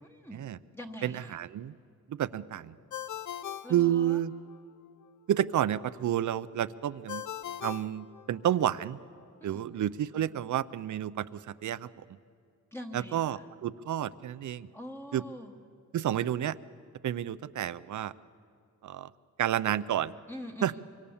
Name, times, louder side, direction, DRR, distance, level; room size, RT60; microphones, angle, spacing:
voice 1, 0.0-0.4 0.7-1.4 3.6-4.2 9.4-9.7 12.7-13.4 14.7-15.5 20.3-20.8, equal, 10° left, 2 dB, 1.0 m, -44 dB
voice 2, 1.0-1.7 2.1-2.7 3.7-4.3 5.3-7.2 7.6-9.0 9.4-11.9 12.9-14.7 15.1-15.2 15.9-16.6 17.0-18.1 18.8-19.1 19.4-20.1 20.6-20.8, right 11 dB, 70° right, 17 dB, 0.6 m, -30 dB
Ringtone, 2.9-4.6 7.1-8.8, left 10 dB, 70° left, 0.8 m, -40 dB
24.5 x 24.5 x 7.2 m, 2.3 s
wide cardioid pair, 160°, 31 cm